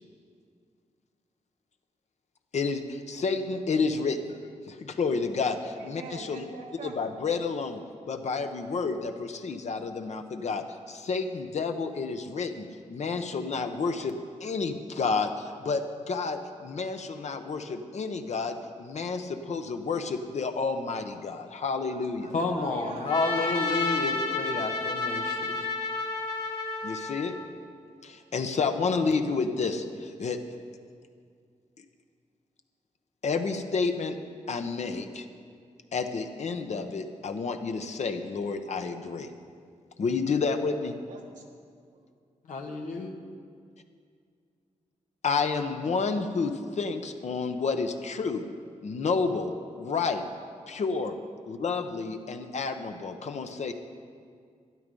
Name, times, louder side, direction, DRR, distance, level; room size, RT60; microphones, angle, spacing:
voice 1, 2.5-4.4 4.7-6.4 6.8-7.8 8.1-22.3 26.8-27.3 28.0-30.4 33.2-34.2 34.5-35.3 35.9-39.3 40.0-40.9 45.2-48.4 48.8-50.2 50.7-51.1 51.5-53.7, left 4 dB, 65° left, 6 dB, 0.9 m, -30 dB
voice 2, 5.6-7.1 21.8-23.1 41.1-41.4 41.9-42.0, right 3 dB, 90° right, 0 dB, 1.6 m, -44 dB
voice 3, 22.3-25.6 42.5-43.1, left 3 dB, 90° left, 2 dB, 1.2 m, -30 dB
Trumpet, 23.0-27.5, left 3 dB, 40° left, 1.9 m, -31 dB
12.5 x 11.0 x 5.4 m, 2.2 s
cardioid pair, 80°, 13 cm